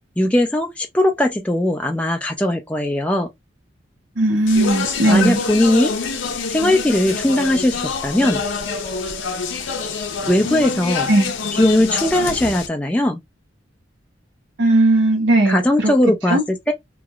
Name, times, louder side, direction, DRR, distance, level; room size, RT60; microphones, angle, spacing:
voice 1, 0.2-3.3 5.1-5.9 6.5-8.4 10.3-11.1 11.5-13.2 15.5-16.7, left 1 dB, 5° left, 0.4 m, -19 dB
voice 2, 4.2-5.4 11.1-11.3 14.6-15.9 16.3-16.4, right 2 dB, 75° right, 1.0 m, -17 dB
Speech, 4.5-12.7, left 5 dB, 80° left, 0.6 m, -26 dB
3.0 x 2.6 x 2.4 m
head